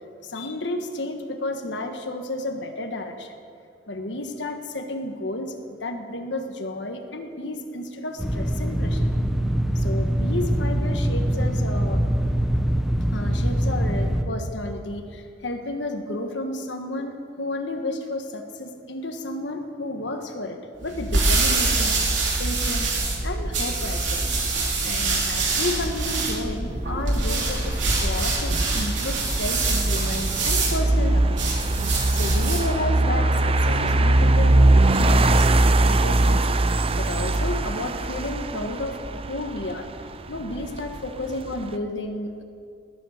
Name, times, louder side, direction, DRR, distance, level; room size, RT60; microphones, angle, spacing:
voice 1, 0.2-3.4 3.9-5.5 5.8-9.1 9.7-12.0 13.1-22.9 23.2-24.3 24.8-31.6 31.8-35.5 35.8-39.9 40.3-42.4, left 2 dB, 75° left, 5 dB, 1.4 m, -32 dB
sound 1, 8.2-14.2, equal, ahead, 1.1 m, -23 dB
sound 2, 20.8-32.7, right 3 dB, 75° right, 3.4 m, -25 dB
sound 3, 26.9-41.7, right 2 dB, 30° right, 0.6 m, -22 dB
20.0 x 9.8 x 6.5 m, 2.4 s
head